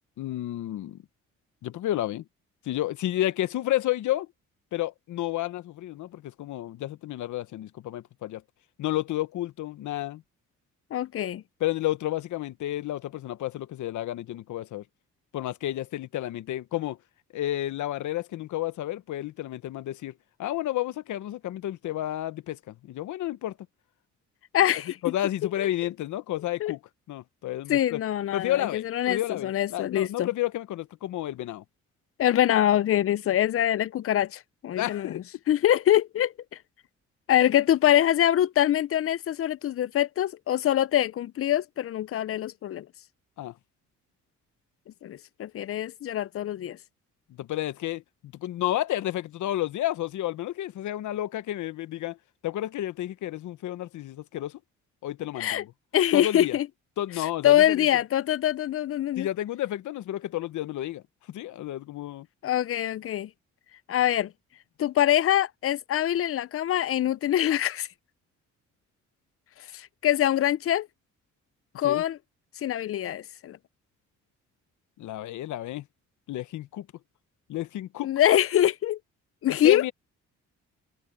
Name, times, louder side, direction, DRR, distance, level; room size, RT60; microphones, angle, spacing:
voice 1, 0.2-1.0 1.6-2.2 2.6-4.3 4.7-8.4 8.8-10.2 11.6-14.8 15.3-17.0 17.3-20.1 20.4-23.6 25.0-26.8 27.1-28.0 28.3-31.6 34.8-35.2 43.4-43.5 47.4-52.2 52.4-54.6 55.0-55.7 56.1-56.6 57.0-57.8 59.2-61.0 61.3-62.3 71.8-72.0 75.0-75.8 76.3-76.9 77.5-78.1 79.5-79.9, left 14 dB, 75° left, 1.1 m, -31 dB
voice 2, 10.9-11.4 24.5-24.9 26.6-26.7 27.7-30.3 32.2-36.3 37.3-42.9 45.0-46.8 55.4-55.6 55.9-56.7 57.4-59.3 62.4-63.3 63.9-64.3 64.8-67.9 69.7-70.9 71.8-72.2 72.6-73.6 78.0-79.0 79.4-79.8, left 11 dB, 50° left, 0.5 m, -24 dB
cardioid pair, 90°, 30 cm